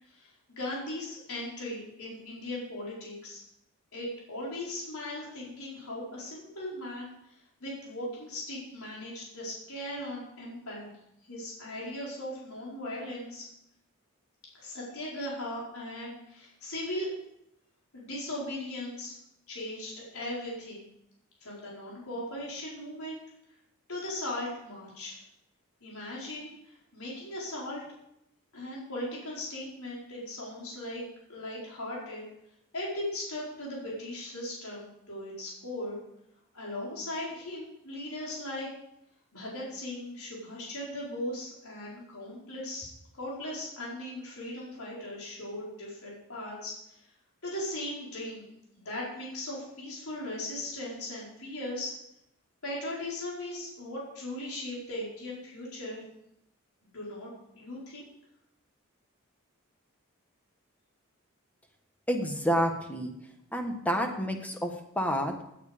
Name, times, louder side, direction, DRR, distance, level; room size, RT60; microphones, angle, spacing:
voice 1, 0.1-3.4 3.9-7.1 7.6-10.9 11.3-13.5 14.5-17.1 17.9-19.1 19.5-20.9 21.4-23.2 23.9-25.2 25.8-27.8 28.5-31.0 31.3-32.2 32.7-36.0 36.5-38.7 39.3-46.8 47.4-48.5 48.8-52.0 52.6-56.0 56.9-57.3 57.5-58.0, left 1 dB, 80° left, -5 dB, 4.6 m, -38 dB
voice 2, 62.1-63.1 63.5-65.4, equal, 5° left, 4 dB, 1.4 m, -29 dB
17.5 x 9.1 x 5.2 m, 0.80 s
head